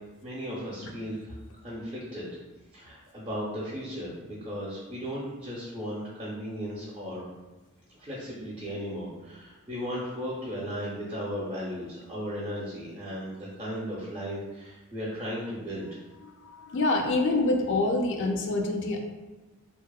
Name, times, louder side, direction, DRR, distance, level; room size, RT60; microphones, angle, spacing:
voice 1, 0.2-1.4 1.6-2.2 2.7-7.3 7.9-15.9, equal, 25° right, -7 dB, 0.5 m, -36 dB
voice 2, 16.2-19.0, left 2 dB, 55° left, 3 dB, 0.3 m, -26 dB
2.7 x 2.0 x 2.3 m, 1.1 s
head